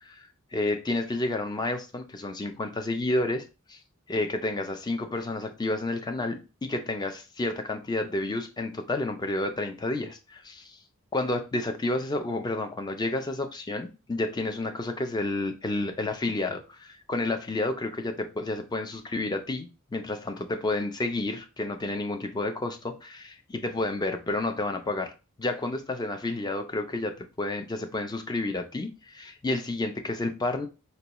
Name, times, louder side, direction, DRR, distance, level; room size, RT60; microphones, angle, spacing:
voice 1, 0.0-3.4 3.7-3.8 4.1-10.8 11.1-25.1 25.4-30.7, left 2 dB, 20° left, 0.4 m, -30 dB
4.0 x 2.2 x 2.9 m
head